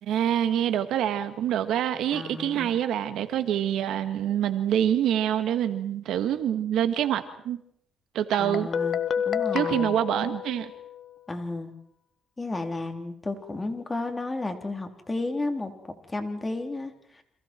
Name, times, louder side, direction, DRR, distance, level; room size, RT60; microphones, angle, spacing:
voice 1, 0.0-7.6 8.1-8.7 9.5-10.7, right 10 dB, 80° right, 10 dB, 1.8 m, -26 dB
voice 2, 2.1-2.7 8.4-9.9 11.3-11.7 12.4-17.2, left 2 dB, 20° left, 5 dB, 3.6 m, -33 dB
Guitar, 8.3-11.1, left 8 dB, 55° left, 1.4 m, -30 dB
29.5 x 27.0 x 4.6 m, 0.72 s
cardioid pair, 90°, 0 cm